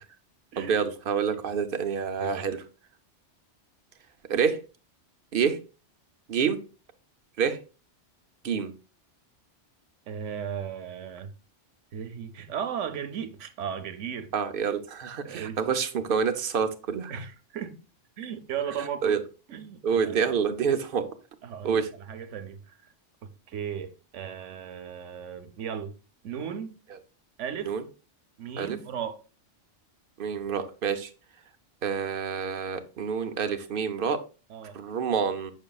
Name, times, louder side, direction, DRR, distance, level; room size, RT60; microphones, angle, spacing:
voice 1, 0.6-2.6 4.3-4.6 5.3-5.6 6.3-6.6 7.4-7.6 8.4-8.7 14.3-17.1 19.0-19.2 19.8-21.1 21.6-21.9 27.7-27.8 28.6-28.8 30.2-31.1 31.8-34.2 34.7-35.5, right 6 dB, 55° right, 0.8 m, -27 dB
voice 2, 2.2-2.5 10.1-11.3 11.9-14.4 15.2-15.6 17.1-17.8 18.2-19.2 19.5-20.3 21.4-22.8 23.2-25.9 26.2-26.8 27.4-27.7 28.4-29.2 34.5-34.8, right 8 dB, 80° right, 1.1 m, -36 dB
6.6 x 6.3 x 2.3 m
omnidirectional pair, 1.2 m